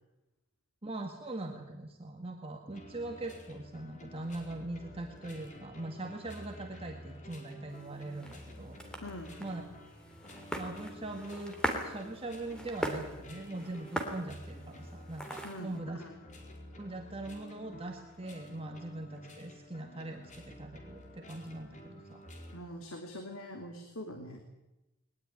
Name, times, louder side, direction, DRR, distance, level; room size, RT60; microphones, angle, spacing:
voice 1, 0.8-9.0 9.4-9.6 10.6-11.5 11.8-16.0 16.8-22.2, right 2 dB, 30° right, 3 dB, 1.8 m, -41 dB
sound 1, 2.7-22.6, left 1 dB, 35° left, 4.4 m, -51 dB
sound 2, 7.7-15.8, equal, 5° left, 3.1 m, -41 dB
voice 2, 9.0-9.6 15.4-16.1 22.5-24.4, left 1 dB, 85° left, 4 dB, 2.9 m, -44 dB
20.5 x 20.0 x 9.7 m, 0.98 s
head